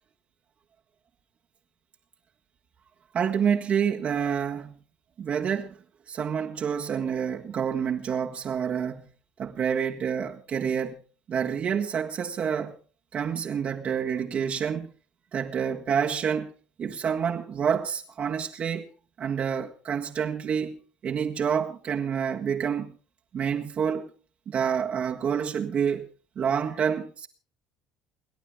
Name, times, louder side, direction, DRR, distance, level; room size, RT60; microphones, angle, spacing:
voice 1, 3.1-4.7 5.2-5.8 6.1-9.0 9.4-11.0 11.3-12.8 13.1-14.9 15.3-16.5 16.8-18.9 19.2-22.9 23.3-24.1 24.5-26.1 26.4-27.3, right 7 dB, 45° right, 1.7 m, -28 dB
29.5 x 11.0 x 3.6 m
hypercardioid pair, 60°, 3 cm